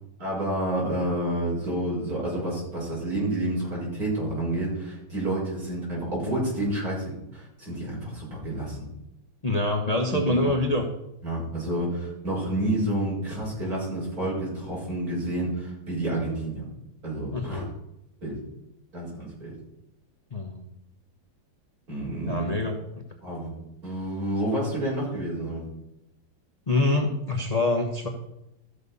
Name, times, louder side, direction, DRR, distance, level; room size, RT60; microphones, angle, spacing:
voice 1, 0.2-8.8 10.1-10.5 11.2-16.6 17.0-17.7 18.2-18.4 18.9-19.5 21.9-22.5 23.2-23.5 23.8-25.6, right 1 dB, 45° right, -5 dB, 6.0 m, -29 dB
voice 2, 9.4-10.8 17.3-17.7 20.3-20.6 22.3-22.8 26.7-28.1, left 2 dB, 25° left, 2 dB, 0.9 m, -25 dB
14.0 x 6.7 x 5.5 m, 0.86 s
omnidirectional pair, 2.3 m